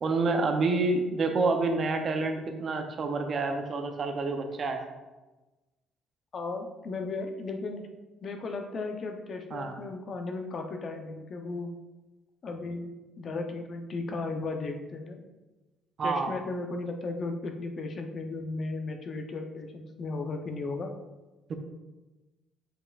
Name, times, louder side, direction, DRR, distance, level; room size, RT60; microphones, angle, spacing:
voice 1, 0.0-4.8 9.5-9.7 16.0-16.3 21.5-21.6, right 3 dB, 35° right, 5 dB, 0.6 m, -28 dB
voice 2, 6.3-7.9 8.2-11.7 12.4-12.9 13.2-15.2 16.0-20.9, left 3 dB, 35° left, 4 dB, 0.6 m, -35 dB
7.1 x 5.6 x 2.4 m, 1.1 s
cardioid pair, 160°, 0 cm